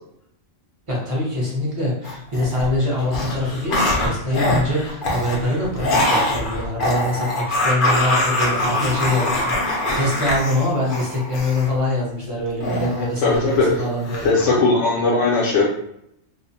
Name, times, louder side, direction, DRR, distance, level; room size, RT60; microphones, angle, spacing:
voice 1, 0.9-14.6, left 1 dB, 30° right, -5 dB, 0.7 m, -24 dB
sound 1, 2.0-2.7 3.0-11.7 12.6-13.7 14.0-14.5, left 1 dB, 55° left, 0.7 m, -23 dB
voice 2, 13.2-13.7 14.2-15.6, left 3 dB, 75° left, -4 dB, 0.9 m, -18 dB
2.4 x 2.0 x 2.6 m, 0.76 s
omnidirectional pair, 1.3 m